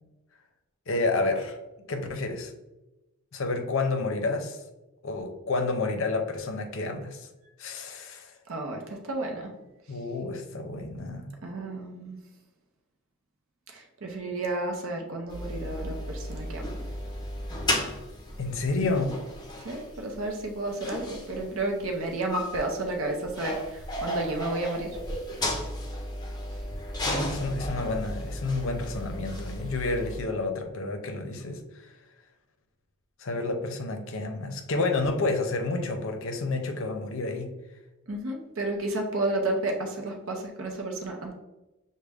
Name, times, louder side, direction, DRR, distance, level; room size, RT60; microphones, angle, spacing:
voice 1, 0.9-1.6 1.9-2.5 3.3-4.6 5.0-7.3 7.6-8.3 9.9-11.3 18.4-19.1 27.3-31.9 33.2-37.5, left 3 dB, 60° left, 5 dB, 0.6 m, -30 dB
voice 2, 8.5-9.5 11.4-12.2 13.7-16.7 19.6-24.9 38.1-41.3, right 2 dB, 60° right, 2 dB, 0.6 m, -32 dB
sound 1, 15.3-30.2, left 1 dB, 20° left, 0.6 m, -34 dB
6.2 x 2.1 x 3.4 m, 1.0 s
head